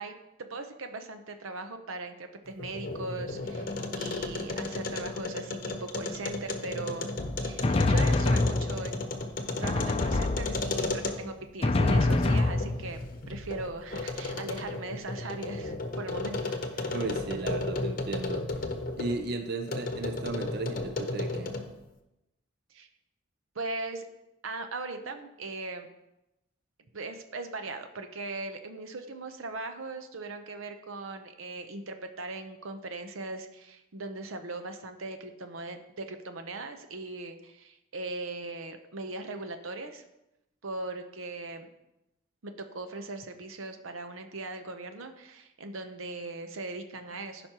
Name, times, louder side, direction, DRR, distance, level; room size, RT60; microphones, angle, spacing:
voice 1, 0.0-9.1 9.6-13.0 13.3-17.0 22.7-22.9 23.5-24.1 24.4-25.9 26.9-40.0 40.6-41.7 42.4-47.5, right 2 dB, 90° right, 7 dB, 0.8 m, -39 dB
sound 1, 2.5-11.4 11.9-19.2 19.7-21.8, left 2 dB, 45° left, 0.8 m, -34 dB
Drum, 7.2-9.1 9.6-10.9 11.6-13.1, left 2 dB, 30° left, 0.4 m, -26 dB
voice 2, 16.9-18.5 19.0-21.6, right 2 dB, 50° right, 6 dB, 0.6 m, -35 dB
15.0 x 5.2 x 2.9 m, 0.92 s
head